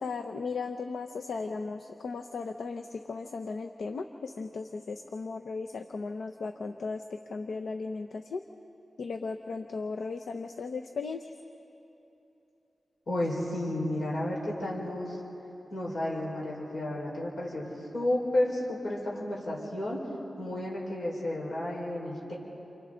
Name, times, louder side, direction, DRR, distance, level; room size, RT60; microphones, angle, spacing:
voice 1, 0.0-7.0 7.3-8.4 9.0-11.3, left 4 dB, 85° left, 6 dB, 0.8 m, -36 dB
voice 2, 13.1-15.2 15.7-17.7 17.9-20.0 20.4-22.3, left 1 dB, 60° left, -4 dB, 4.8 m, -32 dB
29.5 x 27.0 x 3.9 m, 2.9 s
wide cardioid pair, 145°, 0 cm